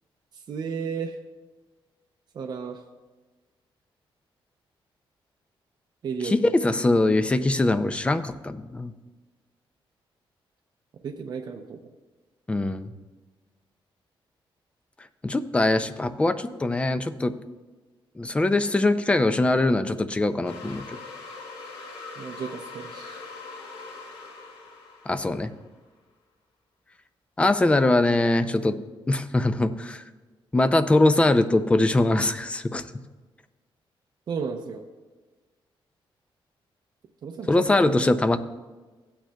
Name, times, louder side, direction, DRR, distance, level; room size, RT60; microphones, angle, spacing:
voice 1, 0.3-1.2 2.3-2.8 6.0-6.5 11.0-11.8 22.2-23.2 34.3-34.9 37.2-38.0, right 6 dB, 50° right, 3 dB, 0.6 m, -34 dB
voice 2, 6.2-8.9 12.5-12.9 15.2-17.3 18.2-21.0 25.1-25.5 27.4-28.8 29.1-30.0 30.5-32.8 37.5-38.4, left 2 dB, 10° left, 10 dB, 0.4 m, -22 dB
sound 1, 20.4-25.8, left 3 dB, 90° left, 1.6 m, -42 dB
15.5 x 8.8 x 2.3 m, 1.3 s
wide cardioid pair, 170°, 9 cm